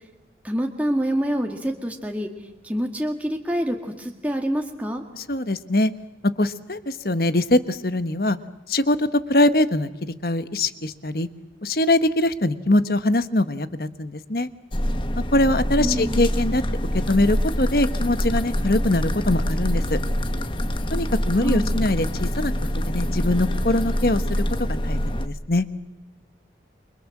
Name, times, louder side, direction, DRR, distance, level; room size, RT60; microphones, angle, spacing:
voice 1, 0.4-5.0 15.8-16.3 21.3-21.8, equal, 10° right, 2 dB, 2.0 m, -27 dB
voice 2, 5.1-5.9 6.4-8.4 8.7-11.3 11.6-14.5 15.3-16.6 16.9-20.0 20.9-24.4 24.8-25.6, left 1 dB, 55° left, 12 dB, 1.3 m, -22 dB
sound 1, 14.7-25.3, equal, 30° left, 1.4 m, -25 dB
28.5 x 24.5 x 7.4 m, 0.98 s
head